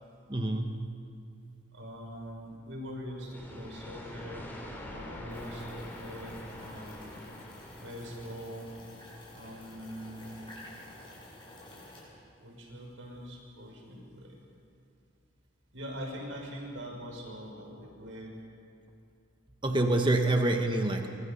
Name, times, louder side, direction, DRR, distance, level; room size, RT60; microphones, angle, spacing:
voice 1, 0.3-0.9 19.6-21.1, right 2 dB, 25° right, 4 dB, 1.4 m, -27 dB
voice 2, 1.7-4.5 4.9-7.0 7.8-8.7 9.3-10.5 12.4-14.4 15.7-18.3, equal, 80° right, 0 dB, 6.3 m, -43 dB
sound 1, 3.3-9.0, left 1 dB, 10° left, 3.7 m, -45 dB
sound 2, 5.3-12.0, left 1 dB, 25° left, 7.8 m, -51 dB
27.5 x 25.0 x 5.5 m, 2.4 s
head